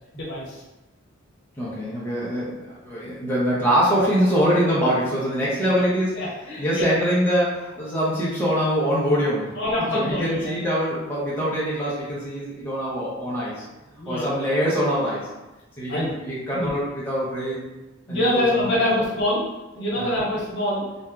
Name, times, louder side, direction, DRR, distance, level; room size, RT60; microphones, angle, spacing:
voice 1, 0.1-0.6 6.1-6.9 9.6-10.5 14.0-14.3 15.9-16.1 16.5-16.7 18.1-19.4 19.7-20.8, left 1 dB, 60° left, -6 dB, 0.9 m, -25 dB
voice 2, 1.6-6.3 6.6-9.6 9.9-13.6 14.1-15.3 15.8-17.7 18.1-18.8 20.0-20.2, equal, 10° left, -8 dB, 0.5 m, -24 dB
2.8 x 2.2 x 2.3 m, 1.1 s
head